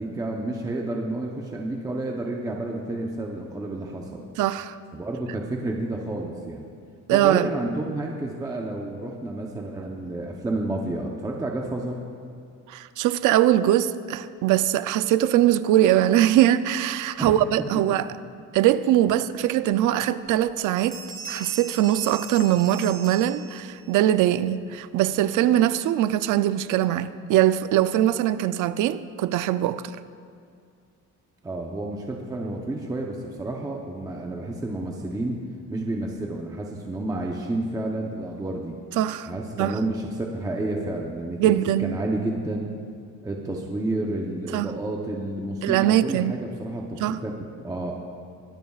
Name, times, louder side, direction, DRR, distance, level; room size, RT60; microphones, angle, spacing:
voice 1, 0.0-4.2 4.9-6.7 7.1-12.0 17.2-17.4 17.7-17.8 31.4-35.4 35.7-38.8 39.3-42.7 43.2-47.3 47.6-48.0, right 2 dB, 10° right, 0.8 m, -30 dB
voice 2, 4.4-4.8 7.1-7.5 12.7-18.1 18.5-21.0 21.3-29.8 39.0-39.3 39.6-39.8 41.4-41.9 44.5-44.7 45.6-46.3 47.0-47.2, right 12 dB, 80° right, 0.5 m, -21 dB
Bell, 20.3-20.5 20.8-23.9, right 5 dB, 40° right, 1.7 m, -39 dB
22.0 x 12.5 x 2.4 m
cardioid pair, 165°, 31 cm